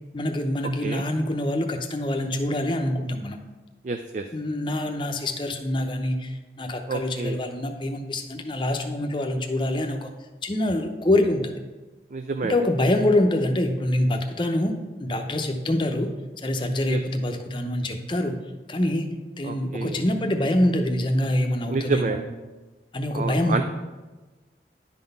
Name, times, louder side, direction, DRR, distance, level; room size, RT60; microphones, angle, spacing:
voice 1, 0.1-3.4 4.3-10.1 10.4-11.5 12.5-16.1 16.4-18.4 18.7-19.1 19.4-22.2 22.9-23.6, left 1 dB, 30° left, 5 dB, 0.7 m, -25 dB
voice 2, 3.8-4.2 6.9-7.4 12.1-12.5 16.9-17.0 19.4-20.0 21.7-22.2 23.1-23.6, right 4 dB, 45° right, 7 dB, 0.4 m, -28 dB
10.5 x 4.0 x 5.3 m, 1.2 s
head